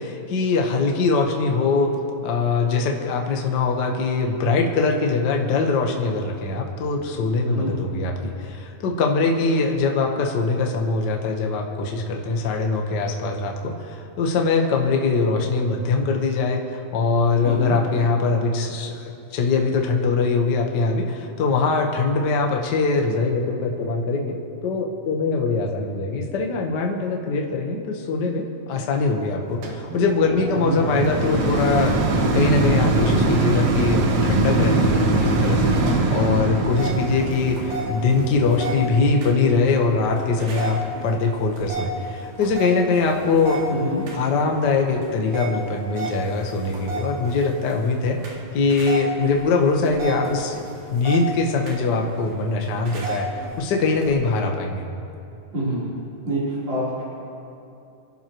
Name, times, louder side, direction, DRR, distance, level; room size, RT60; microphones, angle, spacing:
voice 1, 0.0-1.9 2.2-32.0 32.3-35.7 36.1-43.6 44.1-50.6 50.9-54.8, left 4 dB, 60° left, 1 dB, 1.1 m, -22 dB
voice 2, 17.4-17.7 30.5-30.8 43.7-44.0 55.5-55.8 56.2-57.0, right 1 dB, 35° right, -11 dB, 4.3 m, -26 dB
sound 1, 29.6-40.9 41.5-41.6, right 2 dB, 60° right, 2.0 m, -22 dB
sound 2, 36.7-54.1, right 2 dB, 85° right, 3.7 m, -34 dB
27.5 x 11.5 x 3.1 m, 2.8 s
omnidirectional pair, 3.9 m